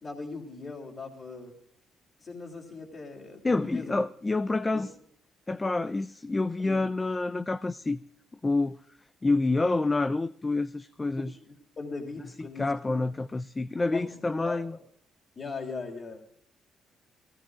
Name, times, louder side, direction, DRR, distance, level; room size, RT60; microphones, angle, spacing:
voice 1, 0.0-1.5 2.2-4.0 4.7-4.9 6.6-6.8 11.1-12.7 13.0-13.1 13.9-14.2 14.4-14.8 15.3-16.2, left 4 dB, 40° left, 3.1 m, -39 dB
voice 2, 3.4-4.9 5.5-8.0 8.4-8.8 9.2-11.3 12.6-14.7, left 3 dB, 20° left, 0.5 m, -28 dB
22.0 x 17.0 x 2.5 m
cardioid pair, 90°, 0 cm